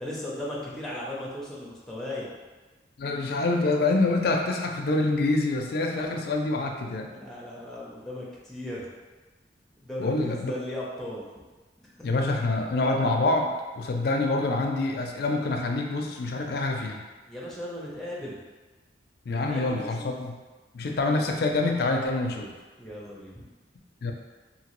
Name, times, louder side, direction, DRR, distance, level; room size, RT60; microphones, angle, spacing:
voice 1, 0.0-2.3 7.1-8.8 9.8-11.3 12.0-12.3 17.3-18.4 19.3-20.2 22.8-23.4, left 1 dB, ahead, -6 dB, 0.6 m, -37 dB
voice 2, 3.0-7.1 10.0-10.5 12.0-17.0 19.3-20.4 20.7-22.6 24.0-24.1, left 2 dB, 60° left, 2 dB, 0.4 m, -26 dB
2.9 x 2.7 x 3.0 m, 1.3 s
head